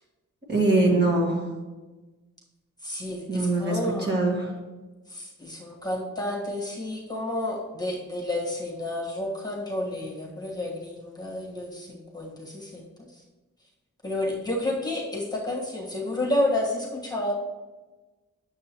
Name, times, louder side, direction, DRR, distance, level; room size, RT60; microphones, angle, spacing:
voice 1, 0.5-1.4 3.3-4.5, right 2 dB, 35° right, -3 dB, 1.6 m, -23 dB
voice 2, 2.8-4.1 5.1-12.9 14.0-17.3, left 1 dB, 15° left, -4 dB, 1.4 m, -30 dB
8.6 x 6.9 x 2.9 m, 1.2 s
wide cardioid pair, 135°, 30 cm